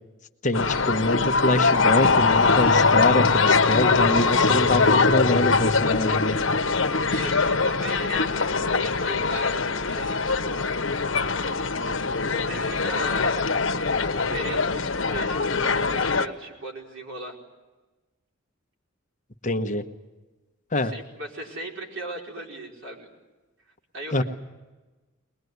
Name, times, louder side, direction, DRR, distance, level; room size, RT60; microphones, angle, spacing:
voice 1, 0.4-6.4 19.4-19.8 20.7-20.9 24.1-24.2, left 1 dB, 40° left, 6 dB, 1.2 m, -24 dB
sound 1, 0.5-16.3, left 4 dB, 85° left, 1.2 m, -22 dB
voice 2, 7.0-10.7 12.2-13.4 14.1-17.4 20.7-23.1 23.9-24.2, right 1 dB, 90° right, -1 dB, 4.9 m, -37 dB
22.0 x 21.5 x 9.5 m, 1.2 s
head